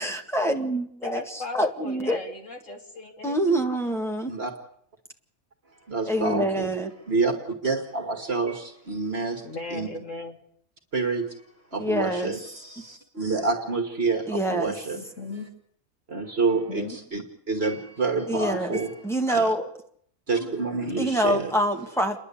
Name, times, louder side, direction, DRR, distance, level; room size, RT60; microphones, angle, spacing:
voice 1, 0.0-1.2 1.5-2.2 3.2-4.3 6.1-6.9 11.8-12.3 14.3-14.7 18.3-18.8 19.0-19.7 21.0-22.2, right 1 dB, ahead, 2 dB, 1.8 m, -25 dB
voice 2, 1.0-3.6 9.4-10.4 14.9-15.5 16.5-17.0, left 3 dB, 65° left, 1 dB, 3.4 m, -37 dB
voice 3, 5.9-6.7 7.1-9.5 9.7-9.9 10.9-11.4 11.7-15.0 16.1-19.5 20.3-21.5, right 3 dB, 50° right, 4 dB, 2.0 m, -28 dB
29.5 x 11.0 x 8.4 m, 0.66 s
omnidirectional pair, 1.4 m